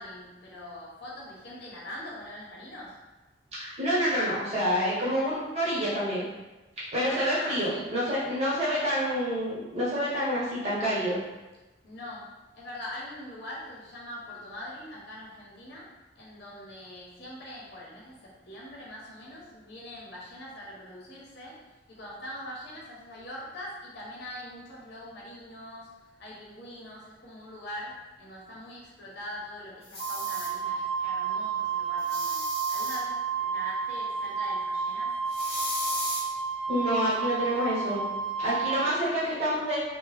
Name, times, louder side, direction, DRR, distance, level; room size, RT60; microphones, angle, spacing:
voice 1, 0.0-3.0 7.0-7.9 11.8-15.9 16.1-32.4 32.7-35.1, left 1 dB, 60° left, -5 dB, 0.8 m, -42 dB
voice 2, 3.6-6.3 6.9-11.2 36.7-38.0 38.4-39.8, equal, 35° right, -8 dB, 1.2 m, -28 dB
sound 1, 29.8-30.5 32.0-33.0 35.3-36.2, left 1 dB, 35° left, 0.9 m, -35 dB
Wind instrument woodwind instrument, 30.0-39.0, right 5 dB, 75° right, 0.3 m, -31 dB
2.8 x 2.2 x 3.2 m, 1.1 s
head